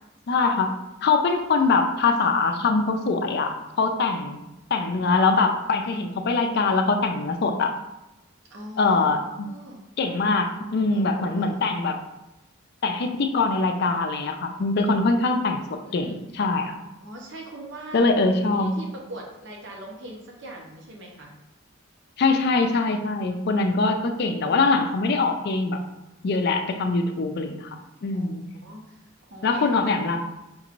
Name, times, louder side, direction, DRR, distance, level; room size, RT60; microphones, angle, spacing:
voice 1, 0.3-0.7 1.0-4.4 4.7-7.7 8.8-9.5 10.0-12.0 12.8-15.6 15.9-16.8 17.9-18.7 22.2-25.8 26.2-27.7 28.0-28.4 29.4-30.2, left 3 dB, 50° left, 5 dB, 0.4 m, -23 dB
voice 2, 8.5-9.1 9.4-9.8 10.9-11.6 15.8-16.3 17.0-18.2 18.6-21.3 28.1-28.3 28.6-29.0 29.3-29.9, right 1 dB, 60° right, -1 dB, 0.8 m, -41 dB
5.2 x 3.0 x 2.5 m, 0.97 s
head